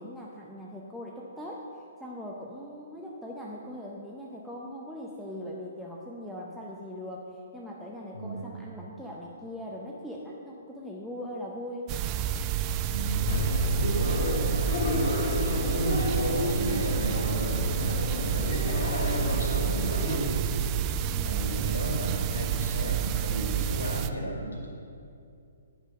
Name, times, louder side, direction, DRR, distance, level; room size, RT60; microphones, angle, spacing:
voice 1, 0.0-1.7 2.0-11.9 21.0-21.7, left 1 dB, ahead, -5 dB, 0.7 m, -40 dB
voice 2, 8.1-8.6 12.9-15.2 15.4-20.7 21.2-24.7, right 1 dB, 75° left, -1 dB, 2.0 m, -34 dB
sound 1, 11.9-24.1, right 10 dB, 25° right, 0.3 m, -29 dB
sound 2, 13.3-20.2, left 2 dB, 50° left, 1.1 m, -30 dB
9.2 x 6.2 x 5.1 m, 2.5 s
figure-of-eight pair, 125°, 0 cm